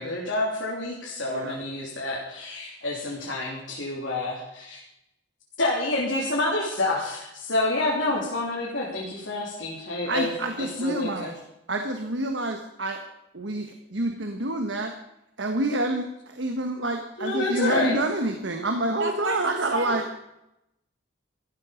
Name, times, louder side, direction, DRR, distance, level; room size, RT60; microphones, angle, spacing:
voice 1, 0.0-4.8 5.6-10.3 10.6-11.3 17.2-18.0, left 2 dB, 75° left, -5 dB, 3.3 m, -28 dB
voice 2, 10.1-11.3 11.7-13.0 13.3-14.9 15.4-20.0, right 1 dB, 70° right, 5 dB, 1.4 m, -28 dB
voice 3, 19.0-20.2, right 2 dB, 90° right, 2 dB, 2.4 m, -32 dB
15.0 x 13.0 x 5.2 m, 0.85 s
head